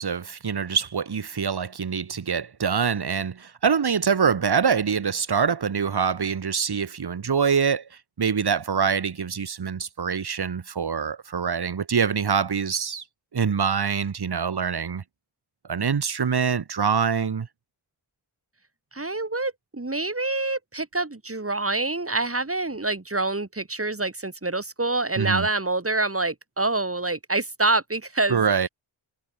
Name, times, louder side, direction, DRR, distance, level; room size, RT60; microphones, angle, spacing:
voice 1, 0.0-7.8 8.2-13.0 13.3-15.0 15.7-17.5 25.2-25.5 28.3-28.7, right 6 dB, 50° right, 1.6 m, -24 dB
voice 2, 18.9-28.5, right 2 dB, 25° right, 7.3 m, -26 dB
cardioid pair, 60°, 49 cm